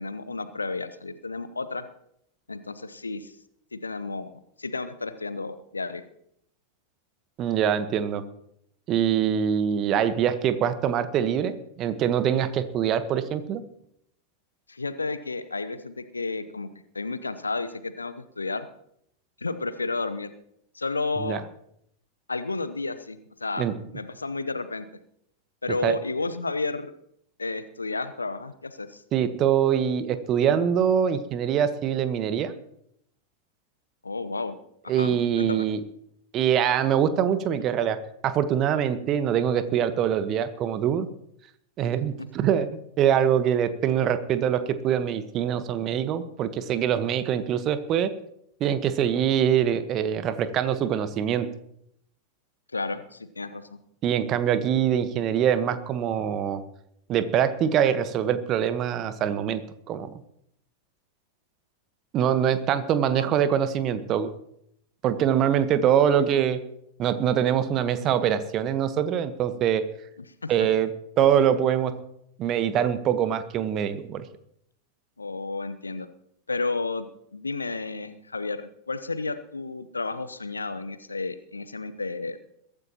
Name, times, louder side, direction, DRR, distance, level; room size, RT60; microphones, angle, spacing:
voice 1, 0.0-1.9 2.5-3.3 3.7-4.3 4.6-6.0 14.7-16.7 16.9-18.7 19.4-20.3 20.7-21.4 22.3-23.7 23.9-24.9 25.6-26.9 27.4-29.0 34.0-34.6 34.8-35.7 52.7-53.8 63.1-63.3 70.4-70.5 75.2-76.1 76.5-77.1 77.3-82.4, left 3 dB, 80° left, 13 dB, 0.9 m, -32 dB
voice 2, 7.4-8.2 8.9-13.6 21.2-21.4 23.6-23.7 25.8-26.0 29.1-32.5 34.9-35.8 36.3-38.0 38.2-41.1 41.8-42.7 43.0-48.1 48.6-51.5 54.0-56.6 57.1-59.6 59.9-60.2 62.1-64.3 65.0-66.6 67.0-69.8 70.5-70.9 71.2-71.9 72.4-74.2, right 9 dB, 35° right, 12 dB, 1.2 m, -24 dB
22.5 x 13.5 x 3.0 m, 0.74 s
figure-of-eight pair, 90°, 0 cm